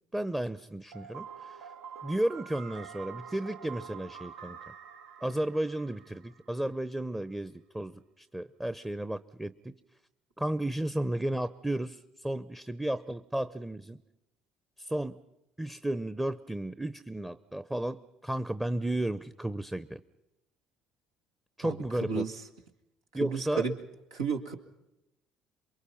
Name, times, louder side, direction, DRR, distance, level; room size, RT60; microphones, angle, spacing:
voice 1, 0.1-1.6 2.0-4.6 5.2-9.7 10.4-12.0 12.2-14.0 14.9-15.2 15.6-20.0 21.6-22.2 23.1-23.6, right 1 dB, 10° right, 13 dB, 0.8 m, -33 dB
sound 1, 0.9-6.8, right 7 dB, 65° right, 1.0 m, -46 dB
voice 2, 21.6-22.4 23.1-23.8 24.1-24.6, right 5 dB, 85° right, 2 dB, 2.1 m, -33 dB
28.0 x 23.0 x 5.8 m, 0.90 s
hypercardioid pair, 60°, 2 cm